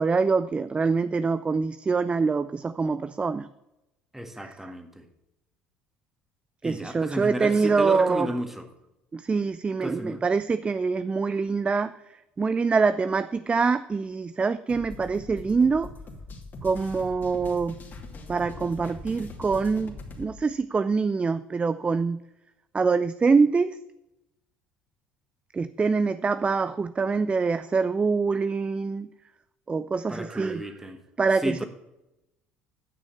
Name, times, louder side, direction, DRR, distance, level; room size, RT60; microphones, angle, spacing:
voice 1, 0.0-3.5 4.4-4.7 6.6-8.3 9.1-12.0 12.4-15.9 16.6-17.8 18.3-22.2 22.7-23.8 25.5-29.1 29.7-30.6 31.2-31.6, right 4 dB, 25° right, 14 dB, 0.4 m, -25 dB
voice 2, 4.1-5.1 6.6-8.7 9.8-10.2 30.1-31.0 31.4-31.7, equal, 5° right, 6 dB, 1.8 m, -33 dB
sound 1, 14.7-20.3, left 2 dB, 40° left, 2.6 m, -42 dB
9.6 x 6.2 x 7.1 m, 0.92 s
hypercardioid pair, 75°, 5 cm